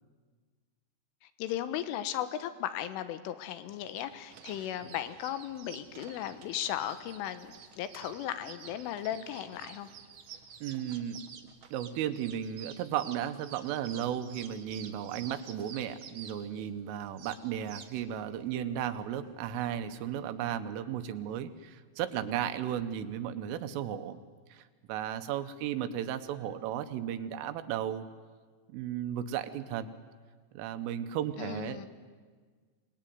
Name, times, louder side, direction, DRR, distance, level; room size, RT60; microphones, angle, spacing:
voice 1, 1.2-9.9 31.4-31.9, left 11 dB, 85° left, 11 dB, 3.7 m, -36 dB
sound 1, 3.7-19.7, right 7 dB, 60° right, 1.9 m, -50 dB
voice 2, 10.6-11.2 11.7-24.2 24.5-28.1 28.7-30.0 30.5-31.9, right 10 dB, 85° right, 9 dB, 3.7 m, -35 dB
26.0 x 19.5 x 9.5 m, 1.5 s
omnidirectional pair, 5.6 m